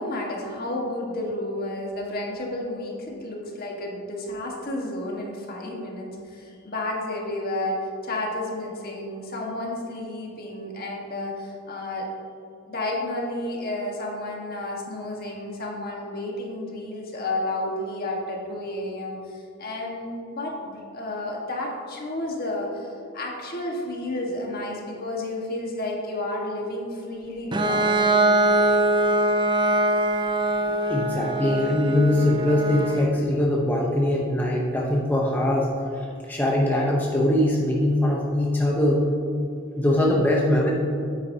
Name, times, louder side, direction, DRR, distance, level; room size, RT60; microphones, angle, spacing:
voice 1, 0.0-12.1 12.7-28.6, left 1 dB, 45° left, -1 dB, 1.5 m, -31 dB
Bowed string instrument, 27.5-33.1, right 1 dB, 20° right, 0.5 m, -22 dB
voice 2, 30.9-35.7 36.3-39.0 39.8-40.7, left 1 dB, 10° left, -4 dB, 0.8 m, -22 dB
9.3 x 9.0 x 2.8 m, 2.6 s
head